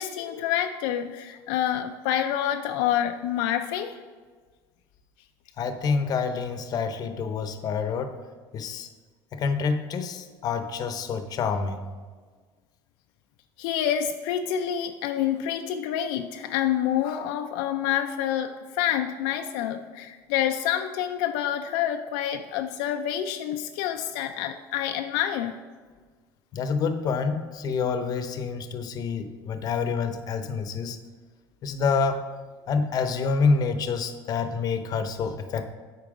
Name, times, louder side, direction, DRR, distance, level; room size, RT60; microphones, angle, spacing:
voice 1, 0.0-4.0 13.6-25.6, left 10 dB, 80° left, 6 dB, 0.4 m, -27 dB
voice 2, 5.6-8.1 8.5-8.9 9.3-11.8 26.5-31.0 31.6-32.2 32.7-35.7, left 5 dB, 45° left, 9 dB, 0.8 m, -27 dB
8.6 x 4.5 x 4.9 m, 1.5 s
supercardioid pair, 110°, 9 cm